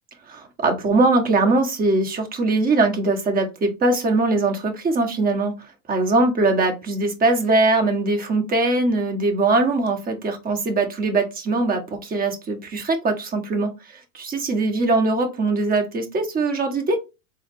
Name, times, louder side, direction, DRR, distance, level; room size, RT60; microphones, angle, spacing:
voice 1, 0.3-5.5 5.9-17.0, right 2 dB, 25° right, 4 dB, 1.0 m, -21 dB
3.8 x 2.0 x 3.5 m, 0.26 s
hypercardioid pair, 100°, 37 cm